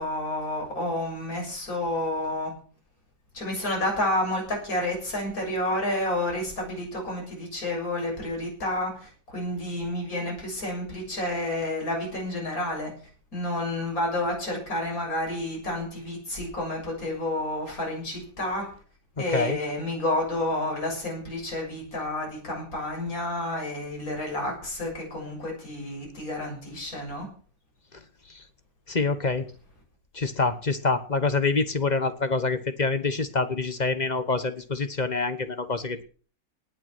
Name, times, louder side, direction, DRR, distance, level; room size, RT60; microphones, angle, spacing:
voice 1, 0.0-2.5 3.3-12.9 13.3-18.7 19.2-27.3, left 1 dB, 50° left, -1 dB, 7.6 m, -30 dB
voice 2, 28.9-29.4 30.1-36.0, left 3 dB, 30° left, 10 dB, 1.0 m, -26 dB
19.0 x 9.3 x 6.1 m, 0.42 s
omnidirectional pair, 1.9 m